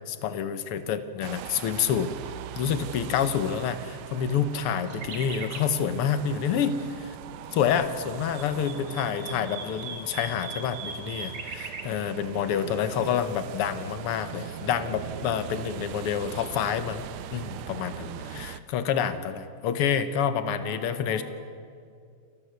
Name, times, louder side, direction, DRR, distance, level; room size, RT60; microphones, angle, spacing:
voice 1, 0.1-2.1 2.6-7.2 7.5-17.0 17.3-21.2, left 8 dB, 85° left, 11 dB, 1.9 m, -28 dB
sound 1, 1.2-18.6, right 11 dB, 75° right, 1.6 m, -41 dB
sound 2, 4.9-5.7 8.1-11.8, right 4 dB, 55° right, 2.5 m, -39 dB
voice 2, 8.2-9.8 12.4-13.2 18.0-18.6 20.6-21.2, equal, 50° left, 0 dB, 3.4 m, -47 dB
28.5 x 13.0 x 8.1 m, 2.3 s
omnidirectional pair, 2.4 m